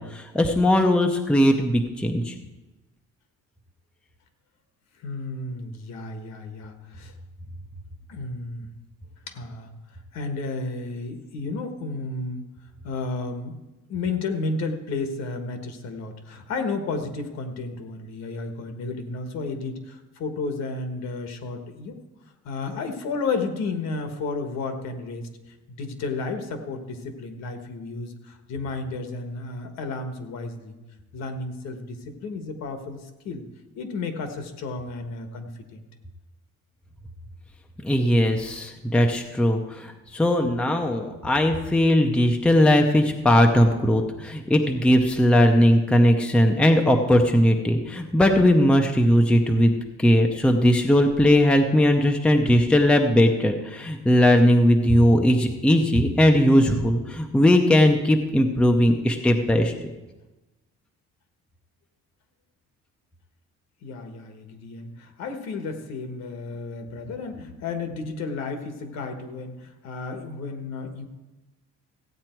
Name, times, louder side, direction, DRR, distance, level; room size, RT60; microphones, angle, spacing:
voice 1, 0.0-2.3 37.8-59.9, left 1 dB, 5° left, 4 dB, 0.6 m, -19 dB
voice 2, 5.0-7.1 8.1-8.7 9.3-9.7 10.1-12.5 12.8-13.5 13.9-22.0 22.4-25.3 25.7-30.8 31.1-33.4 33.7-35.8 63.8-71.1, left 3 dB, 65° left, 7 dB, 1.5 m, -32 dB
15.5 x 8.7 x 4.5 m, 1.1 s
cardioid pair, 175°, 29 cm